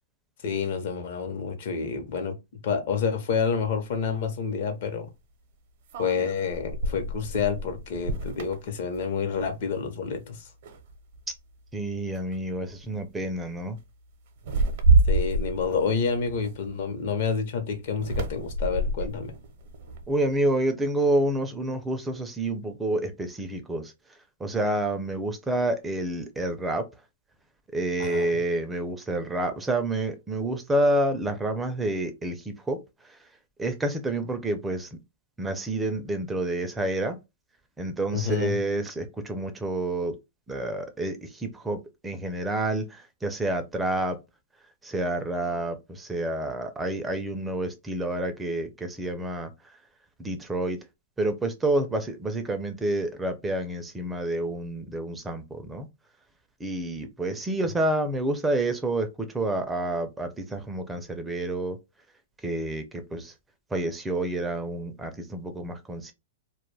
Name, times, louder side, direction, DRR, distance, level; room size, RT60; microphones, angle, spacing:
voice 1, 0.4-2.3 2.6-5.1 6.0-10.5 15.1-19.3 28.0-28.3 38.1-38.6, left 6 dB, 60° left, 0.7 m, -28 dB
sound 1, 3.6-3.7 5.9-9.5 9.9-10.2 10.6-11.3 12.1-12.3 12.7-13.0 14.4-17.0 17.9-20.3, right 2 dB, 60° right, 0.6 m, -27 dB
voice 2, 11.7-13.8 20.1-23.9 24.4-26.8 27.7-32.8 33.6-34.9 35.4-37.2 37.8-40.2 40.5-44.2 44.8-49.5 50.2-50.8 51.2-55.9 56.6-59.1 59.3-61.8 62.4-62.8 63.1-63.3 63.7-66.1, right 1 dB, 10° right, 0.4 m, -28 dB
2.2 x 2.1 x 3.2 m
hypercardioid pair, 135°, 0 cm